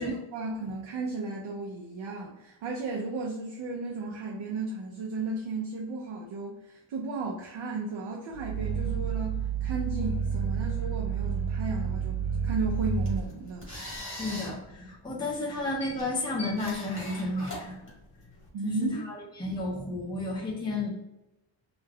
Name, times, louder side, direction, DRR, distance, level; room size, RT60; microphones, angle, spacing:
voice 1, 0.0-13.7 18.5-19.0, right 3 dB, 80° right, -2 dB, 0.6 m, -34 dB
Growling, 8.3-13.3, right 7 dB, 65° left, 0.7 m, -30 dB
sound 1, 12.8-18.5, left 1 dB, 25° left, 1.2 m, -42 dB
voice 2, 14.2-17.9 18.6-20.9, left 2 dB, 10° left, -3 dB, 0.5 m, -32 dB
2.4 x 2.2 x 3.3 m, 0.95 s
wide cardioid pair, 155°, 47 cm